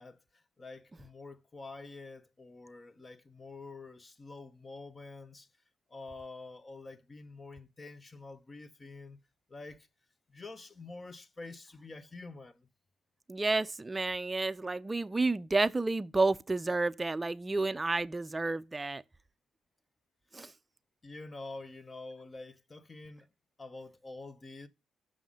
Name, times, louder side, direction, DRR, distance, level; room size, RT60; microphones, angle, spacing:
voice 1, 0.0-5.5 5.9-9.2 9.5-9.9 10.3-12.7 21.0-23.3 23.6-24.7, left 3 dB, 25° left, 0.8 m, -47 dB
voice 2, 13.3-19.0 20.3-20.5, right 3 dB, 20° right, 0.5 m, -30 dB
6.2 x 5.6 x 3.6 m
cardioid pair, 90°, 0 cm